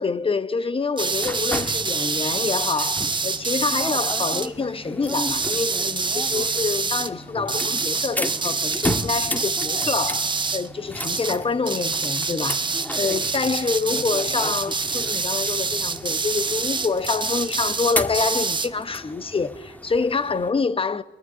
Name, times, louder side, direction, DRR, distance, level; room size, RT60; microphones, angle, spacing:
voice 1, 0.0-12.7 13.0-21.0, left 4 dB, 25° left, 1.2 m, -26 dB
sound 1, 1.0-20.5, equal, 10° left, 1.7 m, -34 dB
sound 2, 1.0-4.5 5.1-7.1 7.5-10.7 11.0-11.4 11.7-18.7, right 4 dB, 25° right, 1.1 m, -26 dB
25.0 x 24.0 x 9.5 m
cardioid pair, 90°, 20 cm